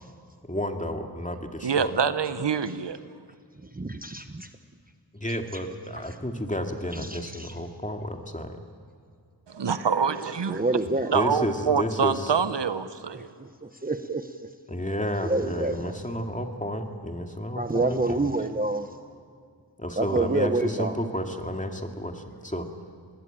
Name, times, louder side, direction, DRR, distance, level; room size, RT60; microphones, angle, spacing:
voice 1, 0.5-1.9 5.1-8.6 11.1-12.3 14.7-18.3 19.8-22.7, equal, 20° left, 4 dB, 2.2 m, -31 dB
voice 2, 1.6-3.0 9.5-10.6 11.1-13.3, right 6 dB, 85° right, 12 dB, 1.0 m, -25 dB
voice 3, 3.7-4.5 6.0-6.2 6.9-7.5 10.5-11.1 13.1-14.5 15.2-16.0 17.6-18.9 20.0-20.9, right 2 dB, 20° right, 8 dB, 1.0 m, -28 dB
25.0 x 20.0 x 8.9 m, 2.2 s
wide cardioid pair, 55°, 41 cm